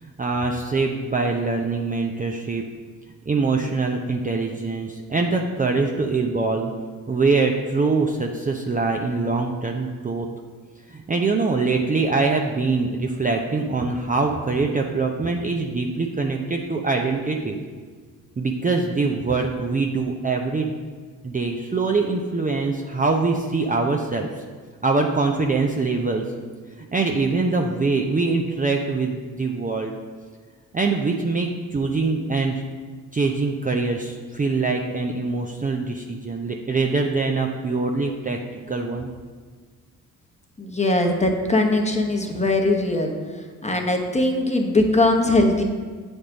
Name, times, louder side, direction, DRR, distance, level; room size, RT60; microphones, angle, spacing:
voice 1, 0.0-2.6 3.3-6.7 7.1-10.3 10.9-17.6 18.4-20.7 21.2-24.4 24.8-26.2 26.8-29.9 30.7-32.6 33.1-38.4 38.7-39.1, right 3 dB, 20° right, 2 dB, 0.6 m, -23 dB
voice 2, 40.6-43.1 43.6-45.6, left 2 dB, 15° left, 2 dB, 1.1 m, -20 dB
8.5 x 3.5 x 3.9 m, 1.5 s
hypercardioid pair, 50°, 41 cm